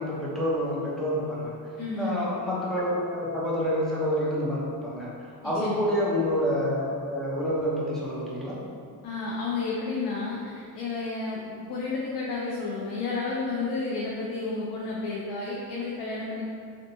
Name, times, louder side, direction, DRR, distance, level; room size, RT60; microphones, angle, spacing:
voice 1, 0.0-1.6 2.0-8.6, equal, ahead, -8 dB, 0.7 m, -28 dB
voice 2, 1.8-2.2 5.4-5.8 9.0-16.4, left 3 dB, 70° left, -5 dB, 0.6 m, -31 dB
3.4 x 2.6 x 2.6 m, 2.3 s
cardioid pair, 110°, 40 cm